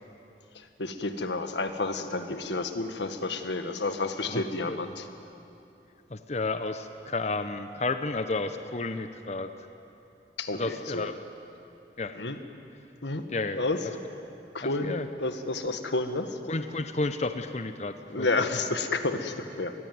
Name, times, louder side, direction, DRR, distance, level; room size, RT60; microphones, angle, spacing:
voice 1, 0.6-5.1 10.4-11.1 12.2-12.4 13.0-13.2 13.6-13.8 14.5-16.4 18.1-19.7, left 2 dB, 90° left, 8 dB, 1.7 m, -30 dB
voice 2, 4.3-4.8 6.1-9.5 10.5-11.2 12.0-12.2 13.3-13.6 14.6-15.1 16.5-18.5, left 3 dB, 40° left, 9 dB, 0.8 m, -32 dB
26.0 x 20.5 x 9.5 m, 2.8 s
head